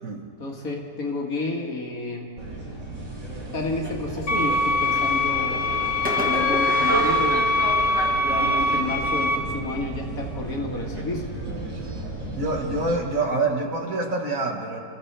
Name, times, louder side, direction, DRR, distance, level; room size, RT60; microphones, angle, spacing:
voice 1, 0.4-2.3 3.5-5.6 6.2-7.5 8.2-11.3, left 2 dB, 55° left, 0 dB, 2.0 m, -30 dB
sound 1, 2.4-12.9, right 2 dB, 85° right, 3.3 m, -32 dB
sound 2, 4.3-9.4, left 2 dB, 35° left, 1.3 m, -23 dB
Fireworks, 4.4-5.4 6.0-8.3, equal, 5° right, 1.1 m, -33 dB
voice 2, 12.4-14.8, right 2 dB, 50° right, 1 dB, 1.8 m, -26 dB
26.0 x 14.5 x 3.3 m, 2.1 s
omnidirectional pair, 1.9 m